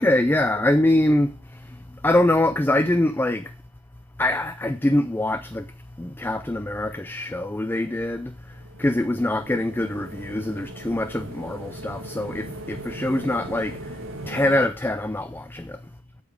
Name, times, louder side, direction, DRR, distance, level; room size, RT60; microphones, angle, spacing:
voice 1, 0.0-3.6 4.2-5.7 6.0-15.8, left 1 dB, 10° left, 0.4 m, -24 dB
sound 1, 8.5-14.7, right 1 dB, 70° right, 1.7 m, -39 dB
8.1 x 7.2 x 4.8 m
head